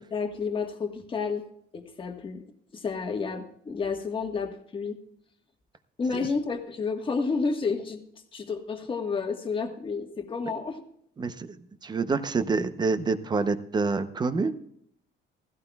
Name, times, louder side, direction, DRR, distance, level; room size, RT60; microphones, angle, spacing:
voice 1, 0.1-1.4 1.7-2.4 2.7-5.0 6.0-8.0 8.3-10.8, left 4 dB, 25° left, 5 dB, 1.5 m, -30 dB
voice 2, 11.8-14.5, right 4 dB, 20° right, 11 dB, 0.7 m, -27 dB
16.5 x 16.0 x 2.3 m, 0.70 s
cardioid pair, 165°, 20 cm